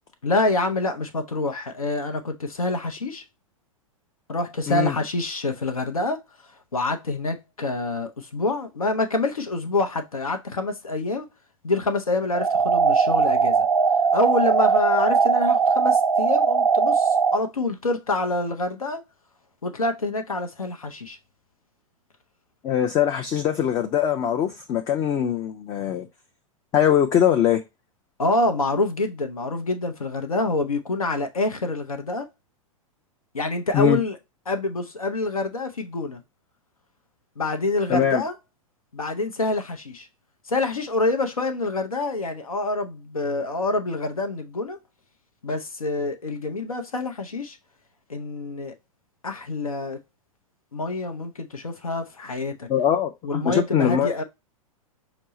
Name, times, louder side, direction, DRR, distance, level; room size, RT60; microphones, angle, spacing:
voice 1, 0.2-3.2 4.3-11.3 11.6-13.7 14.1-19.0 19.6-21.2 28.2-32.3 33.3-34.2 34.5-36.2 37.4-38.3 38.9-40.1 40.5-44.8 45.4-47.6 48.1-48.7 49.2-50.0 50.7-52.7 53.2-54.2, left 2 dB, 80° left, 0.6 m, -26 dB
sound 1, 12.3-17.4, right 5 dB, 85° right, 0.4 m, -20 dB
voice 2, 22.6-26.1 26.7-27.6 33.7-34.0 37.9-38.2 52.7-54.1, left 9 dB, 20° left, 0.4 m, -22 dB
5.2 x 2.0 x 3.9 m
figure-of-eight pair, 100°, 18 cm